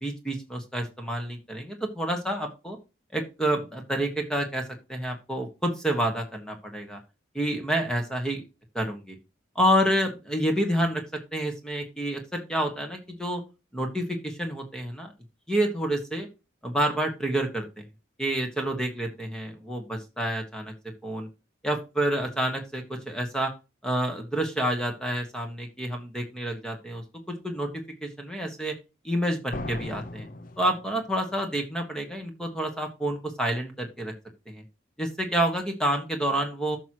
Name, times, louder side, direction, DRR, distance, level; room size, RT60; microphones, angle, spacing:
voice 1, 0.0-2.8 3.1-4.6 4.9-7.0 7.4-8.4 8.8-9.2 9.6-13.4 13.7-15.1 15.5-16.3 16.6-17.8 18.2-20.7 21.0-21.3 21.6-23.5 23.8-27.0 27.4-27.7 28.0-28.8 29.0-30.3 30.6-34.1 34.5-34.6 35.0-36.8, right 1 dB, 5° left, 3 dB, 1.6 m, -28 dB
sound 1, 29.5-31.3, left 1 dB, 45° left, 0.8 m, -38 dB
13.5 x 6.2 x 3.0 m, 0.28 s
head